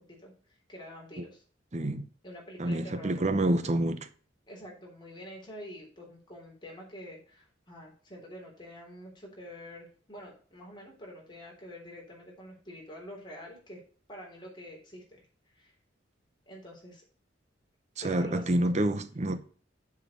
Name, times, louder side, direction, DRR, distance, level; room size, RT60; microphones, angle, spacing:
voice 1, 0.0-1.4 2.2-3.2 4.5-13.8 14.1-15.0 15.5-15.7 16.5-17.0 18.0-18.6, equal, 25° left, 3.5 m, -47 dB
voice 2, 1.7-2.1 2.6-4.1 18.0-19.4, right 1 dB, 35° right, 0.8 m, -28 dB
7.2 x 5.0 x 6.9 m
head